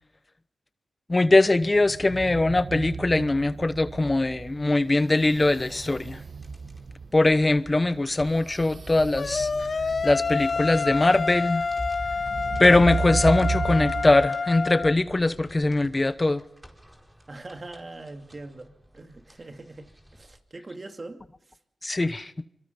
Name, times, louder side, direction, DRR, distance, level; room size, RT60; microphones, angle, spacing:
voice 1, 1.1-6.2 7.1-9.5 10.0-11.6 12.6-16.4 21.8-22.3, left 2 dB, 30° left, 0.9 m, -21 dB
sound 1, 1.5-14.3, right 4 dB, 60° right, 0.8 m, -34 dB
sound 2, 6.3-20.4, equal, 10° right, 4.7 m, -46 dB
sound 3, 9.2-14.9, left 4 dB, 55° left, 0.9 m, -28 dB
voice 2, 17.3-21.6, right 2 dB, 40° right, 2.6 m, -42 dB
25.5 x 24.0 x 5.5 m
cardioid pair, 50°, 0 cm